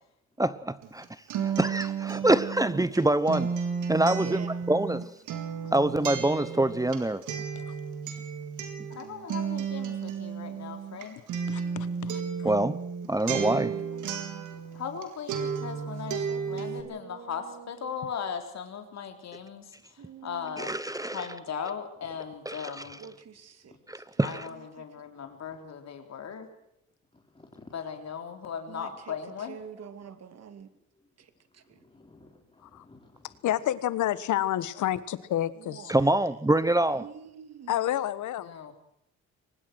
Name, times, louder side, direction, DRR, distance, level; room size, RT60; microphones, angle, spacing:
voice 1, 0.4-1.0 1.4-3.5 3.9-5.0 5.7-7.2 12.4-12.8 13.1-13.8 20.6-21.3 22.5-22.8 23.9-24.5 35.9-37.0, right 1 dB, 10° right, 15 dB, 1.0 m, -25 dB
Acoustic guitar, 0.8-15.0 15.3-16.8, right 6 dB, 85° right, 3.9 m, -33 dB
voice 2, 4.1-4.6 13.6-14.1 16.0-17.9 20.0-20.6 23.0-24.9 28.7-30.7 31.2-31.8 35.6-36.3 36.9-37.8, right 7 dB, 55° right, 10 dB, 2.7 m, -47 dB
voice 3, 8.9-11.2 14.7-20.7 21.1-23.0 24.2-26.5 27.7-29.6 38.4-38.7, left 7 dB, 60° left, 6 dB, 3.8 m, -38 dB
voice 4, 11.5-12.5 32.6-32.8 33.4-35.9 37.7-38.5, left 12 dB, 75° left, 16 dB, 1.4 m, -30 dB
voice 5, 14.5-14.8 22.3-22.4 23.7-23.8 25.3-25.6 27.1-27.7 29.9-30.1 31.8-33.4, left 2 dB, 20° left, 1 dB, 4.0 m, -57 dB
23.5 x 20.0 x 6.3 m, 0.73 s
cardioid pair, 90°, 30 cm